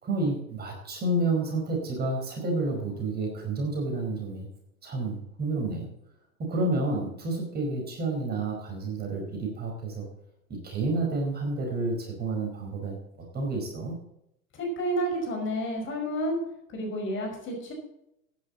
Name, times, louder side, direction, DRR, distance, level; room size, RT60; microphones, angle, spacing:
voice 1, 0.0-4.5 4.8-5.9 6.4-10.1 10.6-13.0 13.3-14.0, right 2 dB, 25° right, 1 dB, 4.8 m, -30 dB
voice 2, 14.5-16.4 16.7-17.7, right 1 dB, 30° left, 2 dB, 5.4 m, -30 dB
15.0 x 10.5 x 4.1 m, 0.80 s
figure-of-eight pair, 100°, 41 cm